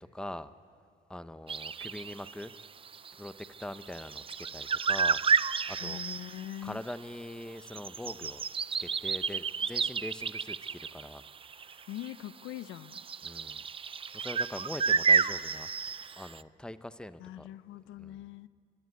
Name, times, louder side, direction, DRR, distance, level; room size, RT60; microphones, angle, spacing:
voice 1, 0.1-0.5 1.1-2.5 3.2-5.2 5.6-6.0 6.6-8.4 8.8-11.2 11.6-11.9 13.2-13.7 14.1-15.7 16.2-17.5 18.0-18.3, left 1 dB, 5° left, 12 dB, 0.8 m, -42 dB
sound 1, 1.5-6.6 6.9-7.0 7.4-12.1 12.7-16.4, right 6 dB, 25° right, 0.4 m, -31 dB
voice 2, 5.8-6.8 11.9-13.0 17.2-18.5, left 13 dB, 85° left, 16 dB, 0.6 m, -42 dB
28.5 x 12.5 x 9.4 m, 2.4 s
cardioid pair, 90°, 20 cm